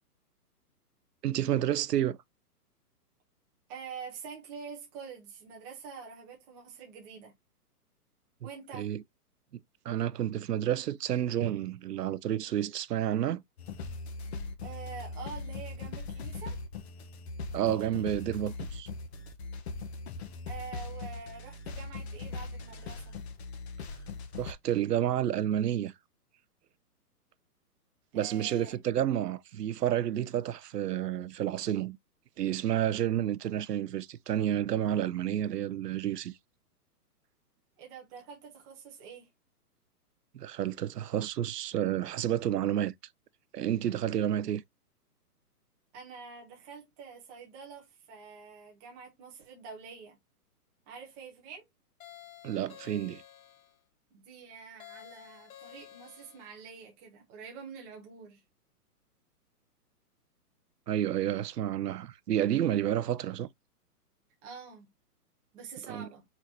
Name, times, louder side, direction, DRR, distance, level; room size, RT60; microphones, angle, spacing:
voice 1, 1.2-2.2 8.7-9.0 9.8-13.4 17.5-18.9 24.4-25.9 28.1-32.0 32.4-36.3 40.3-42.9 43.5-44.6 52.4-53.2 60.9-63.5 65.9-66.1, right 11 dB, 85° right, 0.7 m, -30 dB
voice 2, 3.7-7.3 8.4-8.9 14.6-16.6 20.5-23.1 28.1-28.7 37.8-39.3 45.9-50.2 50.9-51.6 54.1-58.4 64.4-64.9 65.5-66.2, right 5 dB, 5° right, 0.5 m, -46 dB
sound 1, 13.6-24.5, left 3 dB, 45° left, 1.1 m, -40 dB
sound 2, 52.0-53.8 54.8-56.6, left 11 dB, 60° left, 1.1 m, -52 dB
4.6 x 4.3 x 2.7 m
hypercardioid pair, 155°, 47 cm